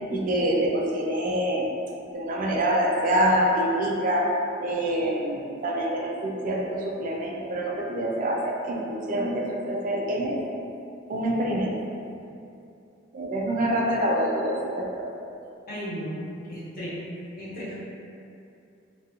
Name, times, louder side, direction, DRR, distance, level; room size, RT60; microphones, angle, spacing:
voice 1, 0.1-1.7 2.1-4.3 4.6-10.4 11.1-11.8 13.1-15.1, right 1 dB, 45° right, -1 dB, 0.3 m, -26 dB
voice 2, 15.7-16.2 16.5-16.9 17.4-17.7, equal, 50° left, -10 dB, 0.8 m, -34 dB
2.4 x 2.2 x 2.8 m, 2.6 s
head